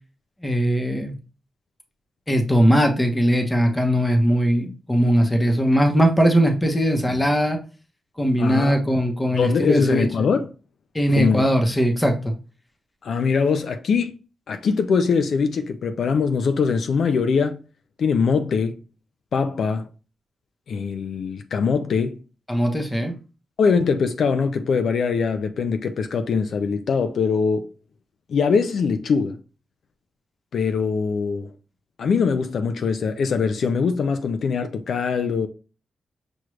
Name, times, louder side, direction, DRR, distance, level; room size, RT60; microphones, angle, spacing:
voice 1, 0.4-1.2 2.3-7.6 8.2-10.3 10.9-12.3 22.5-23.1, equal, 15° left, 0.9 m, -20 dB
voice 2, 8.4-8.8 9.3-10.5 11.2-11.4 13.0-14.1 14.5-17.6 18.0-18.7 19.3-19.9 20.7-22.2 23.6-27.7 28.3-29.4 30.5-31.5 32.0-35.5, left 5 dB, 70° left, 0.5 m, -22 dB
6.1 x 2.4 x 3.2 m
cardioid pair, 105°, 0 cm